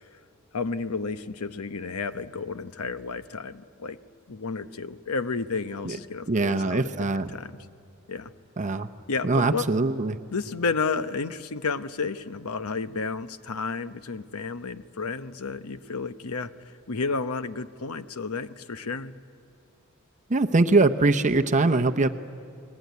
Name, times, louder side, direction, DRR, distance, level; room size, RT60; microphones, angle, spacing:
voice 1, 0.5-4.0 4.3-7.6 8.1-8.3 9.1-9.7 10.3-19.2, left 4 dB, 80° left, 11 dB, 0.9 m, -32 dB
voice 2, 6.3-7.3 8.6-8.9 9.2-10.2 20.3-22.1, right 3 dB, 35° right, 6 dB, 0.8 m, -22 dB
30.0 x 20.5 x 9.4 m, 2.3 s
head